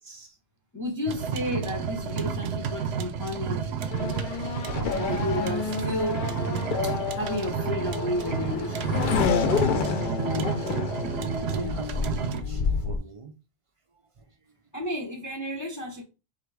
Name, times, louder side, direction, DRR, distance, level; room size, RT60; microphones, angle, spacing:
voice 1, 0.7-4.3 5.0-9.0 14.7-16.0, left 1 dB, 20° left, 0.6 m, -32 dB
sound 1, 1.1-12.4, right 7 dB, 85° right, 0.9 m, -31 dB
Race car auto racing / Accelerating revving vroom, 3.9-13.0, left 5 dB, 60° left, 0.7 m, -29 dB
voice 2, 11.4-13.3, right 3 dB, 45° right, 0.4 m, -41 dB
3.7 x 2.4 x 4.6 m
omnidirectional pair, 1.0 m